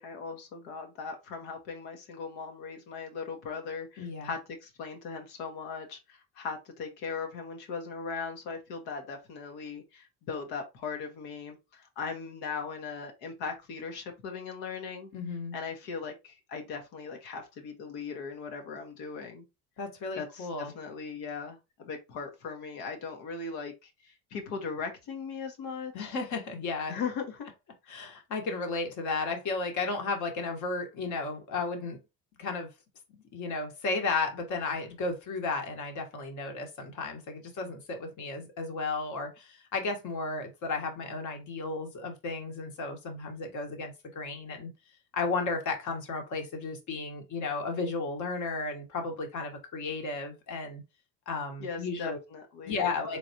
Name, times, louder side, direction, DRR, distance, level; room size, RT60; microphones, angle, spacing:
voice 1, 0.0-15.1 15.5-19.4 20.2-26.1 26.9-27.5 51.6-53.2, left 5 dB, 80° left, 1.3 m, -39 dB
voice 2, 4.0-4.3 15.1-15.6 19.8-20.7 25.9-27.0 27.9-32.0 32.4-32.7 33.3-44.7 45.1-50.8 51.3-52.2 52.6-53.2, left 3 dB, 55° left, 1.4 m, -34 dB
3.9 x 3.4 x 2.8 m
cardioid pair, 120°, 36 cm